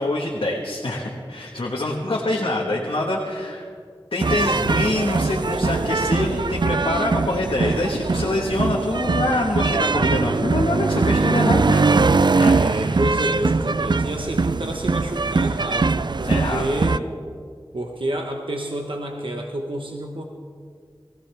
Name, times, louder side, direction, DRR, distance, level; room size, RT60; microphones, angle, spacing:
voice 1, 0.0-3.6 4.1-12.0 12.4-12.6 16.3-17.0, left 2 dB, 85° left, -3 dB, 1.5 m, -25 dB
sound 1, 4.2-17.0, right 4 dB, 55° right, 0.4 m, -21 dB
voice 2, 12.6-17.0 17.7-20.2, right 1 dB, 70° right, 2 dB, 1.1 m, -29 dB
20.5 x 16.0 x 3.5 m, 2.1 s
wide cardioid pair, 40°, 9 cm